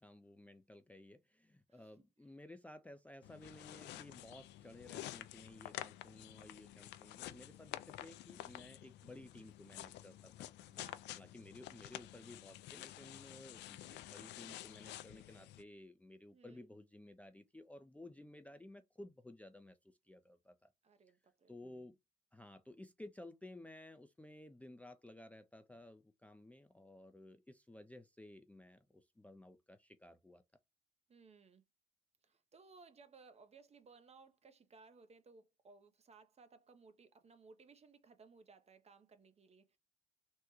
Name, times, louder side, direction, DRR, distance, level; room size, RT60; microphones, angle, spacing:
voice 1, 0.0-10.3 11.1-20.7 21.5-21.9 22.3-30.4, left 1 dB, 5° left, 0.4 m, -56 dB
voice 2, 1.7-2.0 10.6-11.1 16.3-16.7 20.8-21.9 31.1-31.6 32.2-39.8, right 4 dB, 35° right, 0.7 m, -62 dB
sound 1, 3.2-15.6, left 14 dB, 70° left, 0.4 m, -50 dB
3.5 x 2.1 x 3.0 m
supercardioid pair, 70°, 19 cm